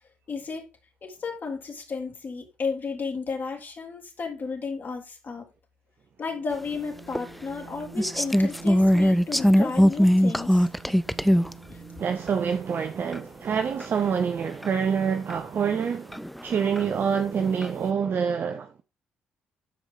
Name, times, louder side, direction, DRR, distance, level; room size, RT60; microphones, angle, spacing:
voice 1, 0.3-0.7 1.0-5.5 6.2-10.7 11.7-11.8, left 4 dB, 45° left, 3.7 m, -33 dB
sound 1, 6.2-13.0, right 5 dB, 70° right, 6.2 m, -46 dB
sound 2, 7.2-7.3 8.0-11.5 12.3-12.4 13.1-13.2 13.8-13.9 14.6-14.7 15.3-15.4 16.1-16.9 17.4-17.7, equal, ahead, 0.6 m, -20 dB
voice 2, 12.0-18.8, right 7 dB, 50° right, 0.9 m, -26 dB
12.5 x 4.9 x 3.8 m
hypercardioid pair, 45°, 4 cm